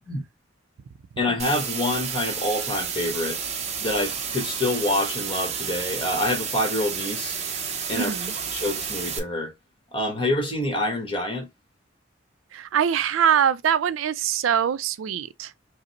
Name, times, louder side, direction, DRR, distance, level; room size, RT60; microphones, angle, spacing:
voice 1, 1.2-3.4 3.8-7.4 7.9-9.5 9.9-11.5, left 1 dB, 25° left, 1.2 m, -27 dB
sound 1, 1.4-9.2, right 7 dB, 35° right, 0.6 m, -31 dB
voice 2, 8.0-8.3 12.5-15.5, right 8 dB, 90° right, 0.4 m, -23 dB
4.9 x 2.0 x 2.9 m
head